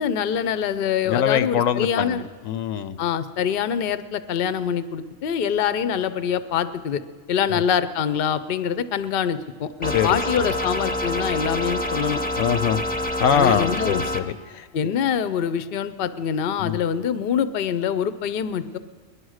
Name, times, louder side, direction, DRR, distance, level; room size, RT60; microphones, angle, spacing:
voice 1, 0.0-2.2 3.0-7.0 7.3-12.2 13.3-14.0 14.7-18.8, left 8 dB, 55° left, 14 dB, 0.7 m, -25 dB
voice 2, 1.1-3.0 9.9-10.2 12.4-12.8 13.2-14.3 14.5-14.6 16.6-16.8, left 8 dB, 85° left, 12 dB, 1.1 m, -23 dB
sound 1, 9.8-14.2, left 1 dB, 10° left, 0.7 m, -27 dB
19.5 x 11.5 x 6.4 m, 1.5 s
omnidirectional pair, 1.4 m